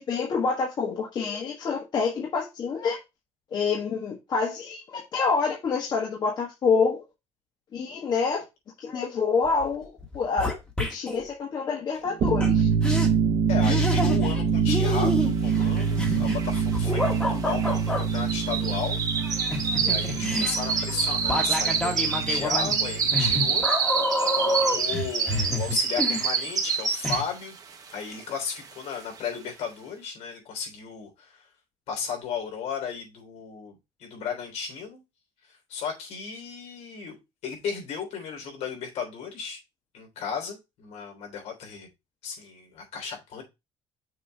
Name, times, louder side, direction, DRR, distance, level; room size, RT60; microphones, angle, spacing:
voice 1, 0.0-3.0 3.5-7.0 7.7-8.4 8.8-10.5 10.9-12.7, left 5 dB, 40° left, 1.5 m, -27 dB
sound 1, 9.4-9.7 10.0-11.2 12.4-12.5 12.8-13.1 13.6-14.4 14.7-18.0 19.2-26.7 27.0-27.2, left 1 dB, 10° left, 1.6 m, -29 dB
sound 2, 12.1-23.6, right 6 dB, 55° right, 1.1 m, -26 dB
voice 2, 13.5-19.0 19.7-23.7 24.3-27.6 27.9-31.5 31.9-35.0 35.4-37.2 37.4-39.6 39.9-41.9 42.2-43.4, left 6 dB, 70° left, 3.3 m, -35 dB
sound 3, 15.8-15.9 16.0-27.5 27.9-28.2 28.6-28.7, right 5 dB, 35° right, 1.1 m, -27 dB
6.5 x 3.1 x 5.4 m
cardioid pair, 150°, 11 cm